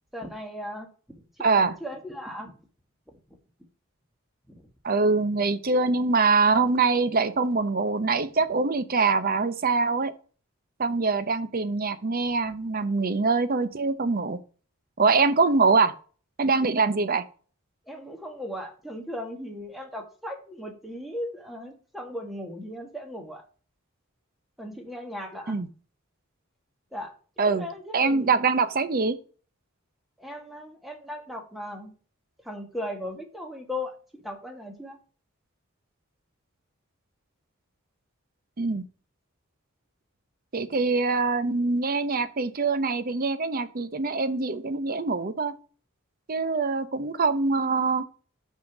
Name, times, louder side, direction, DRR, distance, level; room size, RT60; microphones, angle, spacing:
voice 1, 0.1-0.9 1.4-2.6 3.1-3.4 4.5-4.6 17.9-23.4 24.6-25.6 26.9-27.1 27.4-28.6 30.2-31.9 32.4-35.0, left 1 dB, ahead, 3 dB, 1.6 m, -37 dB
voice 2, 1.4-1.7 4.8-10.1 10.8-14.4 15.0-15.9 16.4-17.2 25.5-25.7 27.4-27.7 27.9-29.2 38.6-38.8 40.5-45.5 46.3-48.0, right 4 dB, 45° right, 12 dB, 0.7 m, -24 dB
6.2 x 5.7 x 6.0 m, 0.39 s
head